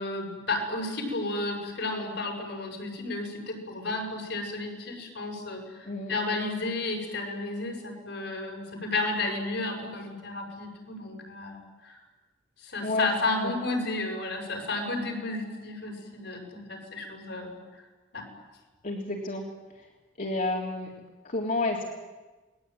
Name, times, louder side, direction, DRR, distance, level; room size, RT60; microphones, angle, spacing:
voice 1, 0.0-12.0 12.6-17.6 18.1-18.2, left 2 dB, 70° left, 2 dB, 6.8 m, -32 dB
voice 2, 18.8-19.4 20.2-20.9 21.2-21.9, left 2 dB, 45° left, -1 dB, 3.4 m, -30 dB
29.5 x 21.5 x 9.3 m, 1.2 s
head